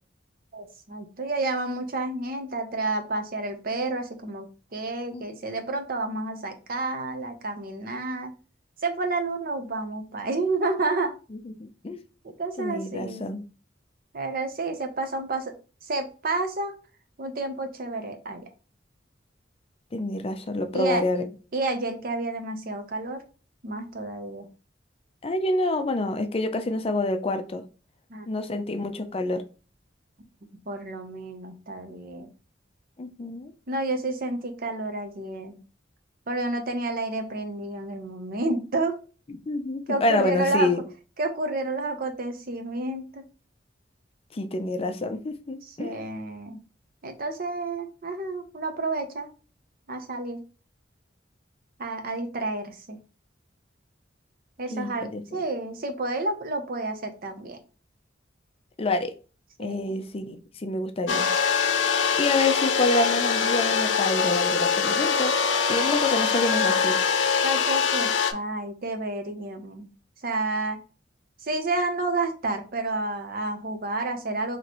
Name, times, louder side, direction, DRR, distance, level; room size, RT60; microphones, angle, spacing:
voice 1, 0.5-8.3 8.8-11.1 12.2-13.3 14.1-15.5 15.8-16.8 17.2-18.4 20.7-21.0 21.5-23.2 23.6-24.5 28.1-28.3 30.7-32.3 33.7-35.6 36.3-39.0 39.9-40.7 41.2-43.2 45.8-46.6 47.0-49.3 49.9-50.4 51.8-53.0 54.6-57.6 59.6-60.0 67.4-69.9 70.2-70.8 71.4-74.6, right 2 dB, 50° right, 0.7 m, -30 dB
voice 2, 11.5-12.0 12.6-13.4 19.9-21.3 25.2-27.6 28.3-29.4 33.0-33.5 39.5-40.8 44.3-46.0 54.7-55.2 58.8-59.1 59.6-61.3 62.2-65.3 65.7-67.0, left 2 dB, 30° left, 0.5 m, -27 dB
sound 1, 61.1-68.3, left 6 dB, 90° left, 0.6 m, -23 dB
4.2 x 3.0 x 3.0 m
head